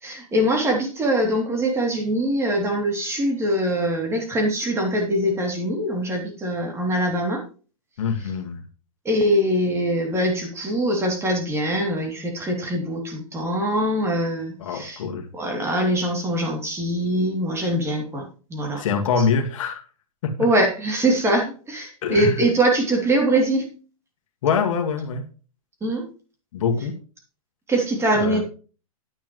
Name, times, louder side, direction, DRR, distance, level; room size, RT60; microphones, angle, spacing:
voice 1, 0.0-7.4 9.0-15.0 15.3-18.2 18.5-19.0 20.4-23.7 25.8-26.1 27.7-28.4, right 1 dB, 15° right, 1 dB, 3.0 m, -23 dB
voice 2, 8.0-8.6 14.6-15.3 18.8-19.8 20.2-20.3 22.0-22.4 24.4-25.2 26.5-27.0 28.2-28.4, left 6 dB, 60° left, 4 dB, 2.0 m, -24 dB
10.5 x 9.2 x 3.2 m, 0.36 s
hypercardioid pair, 130°, 18 cm